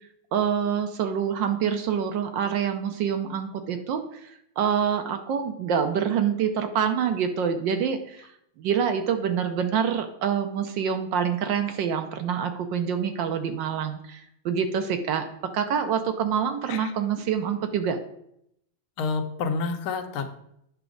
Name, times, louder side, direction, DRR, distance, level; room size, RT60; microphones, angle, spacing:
voice 1, 0.3-8.3 8.6-18.0, right 7 dB, 70° right, 7 dB, 1.3 m, -26 dB
voice 2, 19.0-20.3, left 4 dB, 80° left, 6 dB, 1.7 m, -29 dB
9.0 x 6.0 x 3.8 m, 0.75 s
omnidirectional pair, 2.3 m